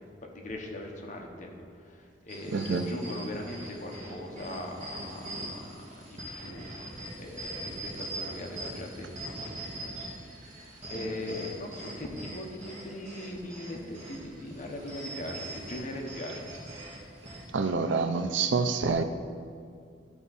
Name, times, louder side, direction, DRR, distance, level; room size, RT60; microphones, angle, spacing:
voice 1, 0.0-9.9 10.4-16.5, left 1 dB, 45° left, 1 dB, 1.1 m, -40 dB
sound 1, 2.3-17.5, right 1 dB, 40° right, 1.7 m, -42 dB
voice 2, 2.5-2.8 17.5-19.0, right 4 dB, 75° right, 9 dB, 0.5 m, -27 dB
12.5 x 4.6 x 4.1 m, 2.2 s
head